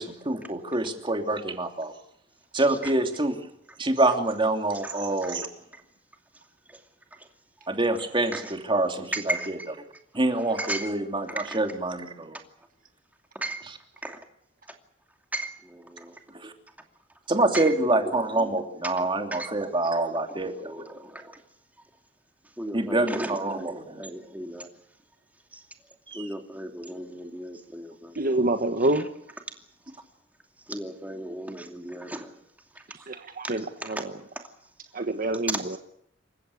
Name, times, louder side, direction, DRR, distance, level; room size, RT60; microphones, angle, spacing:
voice 1, 0.0-1.9 2.5-3.3 3.8-5.5 7.7-9.6 10.1-12.4 16.3-16.5 17.3-20.8 22.7-24.0 26.1-26.2, right 2 dB, 25° right, 5 dB, 3.0 m, -26 dB
voice 2, 2.6-3.0 4.7-5.4 5.7-5.8 6.7-6.8 8.3-8.5 9.1-9.7 10.4-10.9 11.3-11.6 13.3-13.6 14.0-14.2 15.3-16.2 17.5-18.1 18.8-19.0 19.3-19.5 20.3-21.4 22.6-24.7 25.5-25.6 26.1-28.1 28.9-29.0 30.7-32.3 32.7-32.8 33.6-34.0 35.5-35.8, right 1 dB, 10° right, 4 dB, 2.6 m, -36 dB
voice 3, 28.2-29.1 33.1-34.1 34.9-35.8, right 2 dB, 50° right, 7 dB, 1.3 m, -26 dB
28.5 x 15.5 x 8.5 m, 0.72 s
head